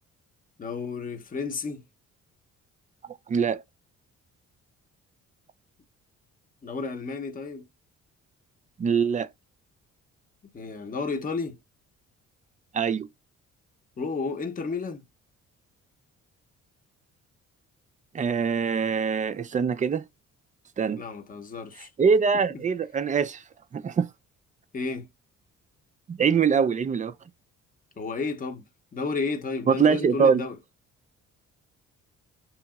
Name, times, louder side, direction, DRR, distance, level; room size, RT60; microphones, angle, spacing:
voice 1, 0.6-1.8 6.6-7.6 10.4-11.6 14.0-15.0 21.0-21.9 24.7-25.1 28.0-28.6 28.9-30.6, left 4 dB, 30° left, 0.7 m, -32 dB
voice 2, 3.3-3.6 8.8-9.3 12.7-13.1 18.1-20.0 20.8-21.0 22.0-23.4 23.7-24.1 26.1-27.1 29.7-30.4, right 6 dB, 25° right, 0.3 m, -23 dB
2.9 x 2.7 x 2.3 m
cardioid pair, 90°, 30 cm